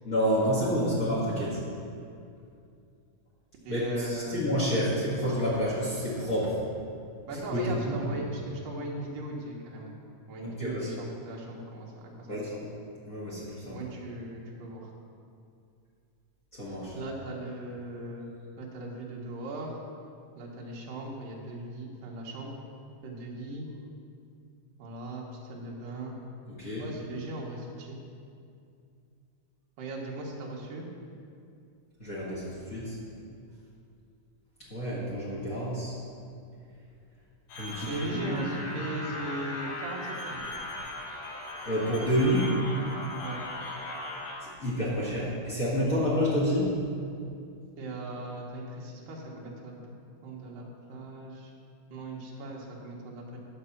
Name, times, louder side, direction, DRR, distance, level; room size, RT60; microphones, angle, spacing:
voice 1, 0.0-1.6 3.7-6.6 7.3-8.1 10.4-10.9 12.3-12.5 13.1-13.8 16.5-16.9 26.6-26.8 32.0-33.0 34.7-35.9 37.6-38.5 41.6-42.6 44.4-46.8, equal, 40° left, -7 dB, 1.3 m, -29 dB
voice 2, 3.6-4.4 7.3-9.9 10.3-12.5 13.6-14.9 16.9-18.3 18.6-19.8 20.4-22.6 23.0-23.7 24.8-26.2 26.8-28.0 29.8-30.9 37.8-40.5 43.2-43.4 47.8-50.0 50.2-51.5 51.9-53.4, right 2 dB, 70° right, -2 dB, 2.8 m, -38 dB
sound 1, 37.5-44.3, left 1 dB, 80° left, 3.4 m, -38 dB
11.0 x 4.8 x 7.1 m, 2.4 s
omnidirectional pair, 4.3 m